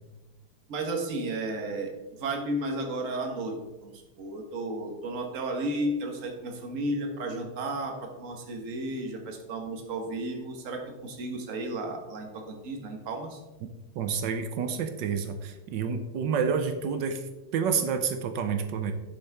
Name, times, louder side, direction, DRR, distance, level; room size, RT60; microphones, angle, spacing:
voice 1, 0.7-1.9 2.2-13.4, right 1 dB, 45° right, 2 dB, 1.5 m, -33 dB
voice 2, 14.0-17.2 17.5-18.9, right 6 dB, 70° right, 8 dB, 1.2 m, -29 dB
9.1 x 7.2 x 3.5 m, 1.1 s
omnidirectional pair, 2.3 m